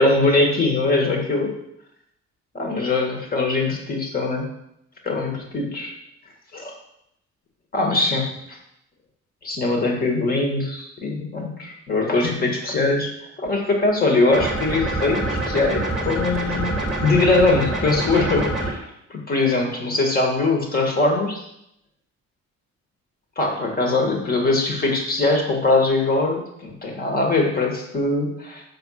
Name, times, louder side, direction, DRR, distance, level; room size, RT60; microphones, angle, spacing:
voice 1, 0.0-1.5 2.5-4.5 5.0-5.9 6.5-6.7 7.7-8.6 9.4-13.1 13.4-16.7 17.0-18.8 19.1-21.4 23.4-28.6, left 3 dB, 30° left, 0 dB, 1.8 m, -21 dB
sound 1, 14.3-18.7, right 1 dB, ahead, 1.5 m, -26 dB
6.7 x 5.5 x 6.4 m, 0.78 s
wide cardioid pair, 175°, 29 cm